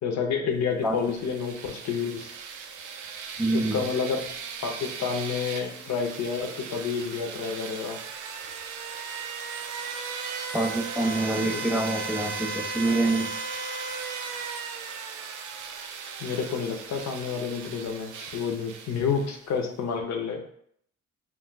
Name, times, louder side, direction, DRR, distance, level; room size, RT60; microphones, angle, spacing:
voice 1, 0.0-2.3 3.5-4.2 4.6-8.0 11.4-11.7 16.2-20.4, left 6 dB, 65° left, 3 dB, 0.7 m, -29 dB
sound 1, 0.9-19.5, right 5 dB, 85° right, 0.5 m, -37 dB
voice 2, 3.4-3.8 10.5-13.3, right 2 dB, 5° right, 1 dB, 0.3 m, -26 dB
2.5 x 2.2 x 3.8 m, 0.67 s
cardioid pair, 90°, 30 cm